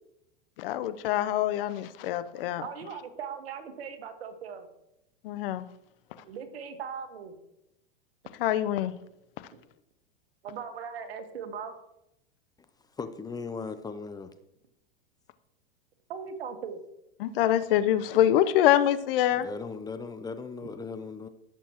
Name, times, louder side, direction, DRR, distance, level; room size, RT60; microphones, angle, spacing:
voice 1, 0.6-2.6 5.2-5.7 8.4-8.9 17.2-19.5, left 12 dB, 65° left, 0.8 m, -25 dB
voice 2, 2.6-4.7 6.2-7.4 9.5-9.6 10.4-11.7 16.1-16.8, right 6 dB, 80° right, 1.7 m, -39 dB
voice 3, 13.0-14.3 19.3-21.3, left 4 dB, 15° left, 0.5 m, -38 dB
17.0 x 7.0 x 3.0 m
hypercardioid pair, 120°, 30 cm